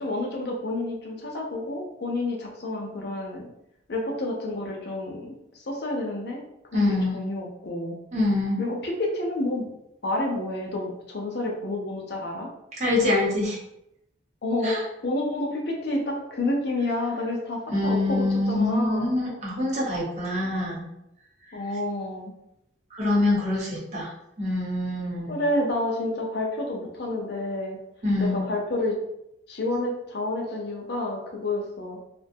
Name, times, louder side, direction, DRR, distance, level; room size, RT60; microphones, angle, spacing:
voice 1, 0.0-3.5 3.9-5.4 5.7-6.4 6.7-8.0 8.6-9.7 10.0-12.5 14.4-14.8 15.0-19.2 21.5-22.3 25.3-27.8 28.2-29.0 29.5-32.0, left 2 dB, 60° left, 0 dB, 0.6 m, -29 dB
voice 2, 6.7-7.2 8.1-8.6 12.8-13.6 14.6-14.8 17.7-20.9 22.9-24.1 24.4-25.3 28.0-28.4, left 2 dB, 35° right, -5 dB, 0.9 m, -25 dB
2.5 x 2.2 x 2.6 m, 0.82 s
head